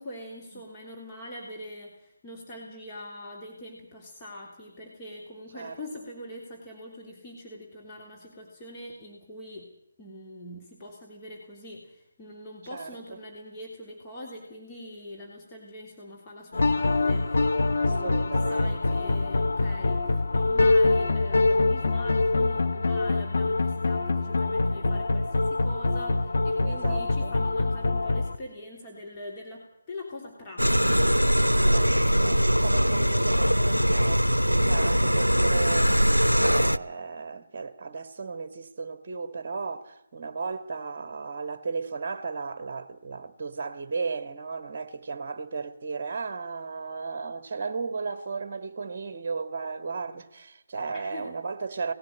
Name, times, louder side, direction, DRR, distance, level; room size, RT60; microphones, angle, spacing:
voice 1, 0.0-9.7 10.0-32.1 50.9-51.3, left 1 dB, 20° left, 3.2 m, -43 dB
sound 1, 16.5-28.4, left 3 dB, 55° left, 1.4 m, -24 dB
voice 2, 17.7-19.0 26.6-27.3 31.6-51.9, right 4 dB, 35° right, 1.7 m, -35 dB
sound 2, 30.6-36.8, equal, 85° right, 0.7 m, -22 dB
18.5 x 16.5 x 8.8 m
figure-of-eight pair, 150°, 0 cm